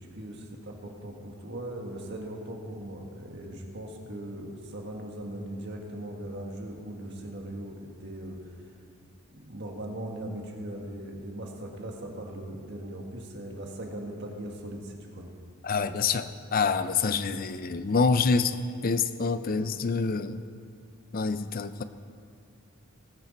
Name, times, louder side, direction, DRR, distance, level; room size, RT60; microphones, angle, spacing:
voice 1, 0.0-8.4 9.3-15.3, right 1 dB, 50° right, 1 dB, 1.7 m, -39 dB
voice 2, 15.6-18.6 18.8-20.4 21.1-21.8, left 4 dB, 40° left, 12 dB, 0.5 m, -26 dB
21.0 x 9.2 x 4.1 m, 2.2 s
head